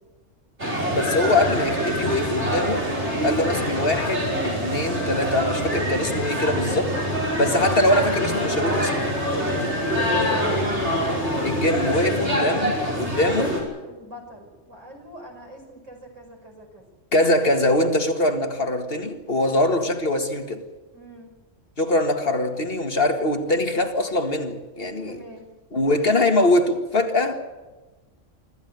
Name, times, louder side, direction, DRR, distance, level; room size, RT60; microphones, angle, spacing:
sound 1, 0.6-13.6, equal, 65° right, 6.1 m, -25 dB
voice 1, 0.9-2.9 3.2-6.9 7.4-8.9 11.4-12.7 13.0-13.5 17.1-20.6 21.8-25.2 25.7-27.4, left 1 dB, 50° left, 2.1 m, -22 dB
voice 2, 8.5-11.6 12.1-12.8 13.2-13.6 13.8-16.8 20.9-21.3 25.1-25.5, right 1 dB, 80° right, 6.1 m, -40 dB
25.0 x 14.5 x 9.5 m
omnidirectional pair, 1.3 m